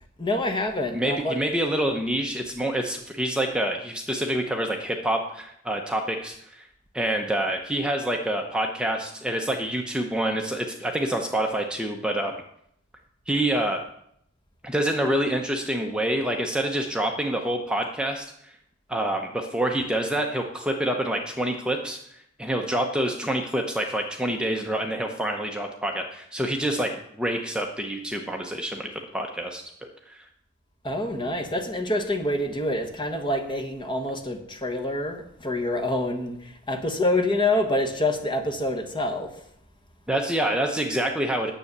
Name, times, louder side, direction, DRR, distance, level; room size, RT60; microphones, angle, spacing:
voice 1, 0.2-1.3 30.8-36.4 36.7-39.3, left 1 dB, 25° left, 4 dB, 1.2 m, -26 dB
voice 2, 0.9-6.7 6.9-12.4 13.3-13.8 14.6-18.5 18.9-22.0 22.4-29.6 30.1-30.2 40.1-41.5, right 1 dB, 5° right, 2 dB, 0.8 m, -27 dB
9.9 x 7.6 x 6.6 m, 0.72 s
head